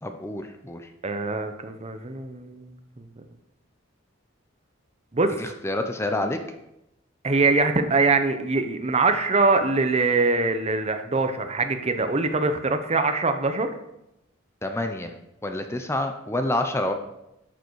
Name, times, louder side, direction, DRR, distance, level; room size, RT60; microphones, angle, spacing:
voice 1, 0.0-0.9 5.4-6.4 14.6-15.1 15.4-16.9, left 1 dB, 15° left, 6 dB, 0.7 m, -28 dB
voice 2, 1.0-3.3 5.1-5.4 7.2-13.7, right 3 dB, 30° right, 8 dB, 0.9 m, -23 dB
12.0 x 6.7 x 4.7 m, 0.86 s
head